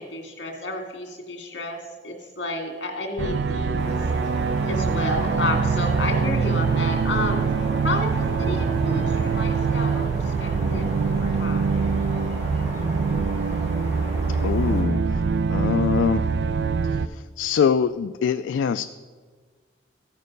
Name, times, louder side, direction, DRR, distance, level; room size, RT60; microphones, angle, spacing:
voice 1, 0.0-4.0 4.7-7.4 7.8-11.9, left 2 dB, 70° left, 3 dB, 1.9 m, -31 dB
sound 1, 3.2-17.1, right 5 dB, 60° right, 0.4 m, -24 dB
sound 2, 3.8-14.8, equal, 35° right, 2.8 m, -35 dB
voice 2, 14.4-15.2 15.5-16.3 17.4-18.8, left 7 dB, 85° left, 10 dB, 0.3 m, -23 dB
14.5 x 6.6 x 5.2 m, 1.5 s
head